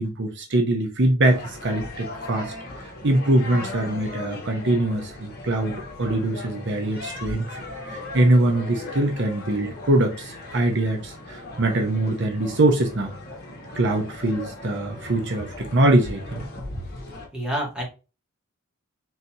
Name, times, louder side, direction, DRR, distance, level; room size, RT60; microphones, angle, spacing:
voice 1, 0.0-2.5 2.8-13.1 13.7-16.4, right 1 dB, 55° right, 0.8 m, -23 dB
sound 1, 1.2-17.3, left 2 dB, 45° left, 1.6 m, -38 dB
voice 2, 17.3-17.8, right 1 dB, 5° right, 1.8 m, -28 dB
4.1 x 4.0 x 2.8 m
head